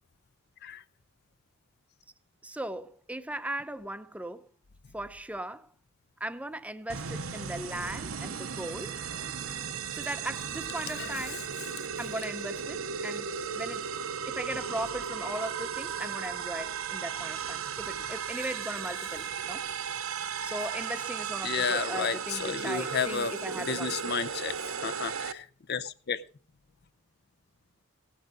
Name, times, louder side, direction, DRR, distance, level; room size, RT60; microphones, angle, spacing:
voice 1, 2.4-4.5 4.9-5.7 6.2-9.1 9.9-11.5 12.0-13.9 14.3-19.7 20.4-23.9, right 1 dB, 5° right, 0.6 m, -38 dB
sound 1, 6.9-25.3, right 7 dB, 80° right, 0.8 m, -36 dB
voice 2, 11.0-11.3 21.4-26.2, left 6 dB, 50° left, 0.6 m, -32 dB
16.5 x 9.0 x 5.0 m
head